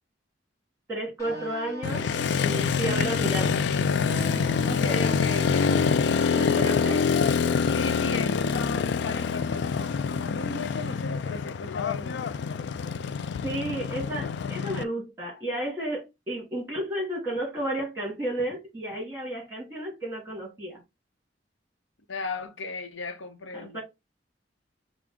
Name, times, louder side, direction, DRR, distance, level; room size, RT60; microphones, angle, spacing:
voice 1, 0.9-3.6 6.3-7.0 13.4-20.8 23.5-23.8, right 1 dB, 15° right, 2.4 m, -32 dB
sound 1, 1.2-8.8, right 1 dB, 20° left, 1.7 m, -42 dB
Motorcycle, 1.8-14.8, left 6 dB, 65° left, 0.3 m, -26 dB
voice 2, 4.6-5.8 6.6-7.2 7.7-12.3 22.1-23.8, left 3 dB, 85° left, 0.7 m, -36 dB
6.1 x 2.1 x 3.5 m
head